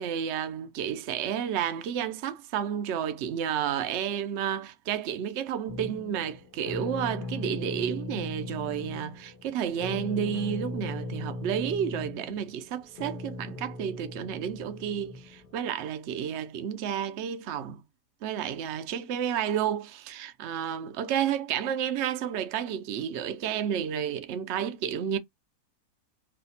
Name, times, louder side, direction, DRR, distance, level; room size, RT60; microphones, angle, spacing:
voice 1, 0.0-17.8 18.2-25.2, right 9 dB, 90° right, 0.6 m, -31 dB
sound 1, 5.7-15.6, left 2 dB, 40° left, 0.8 m, -38 dB
3.2 x 2.1 x 4.0 m
omnidirectional pair, 1.8 m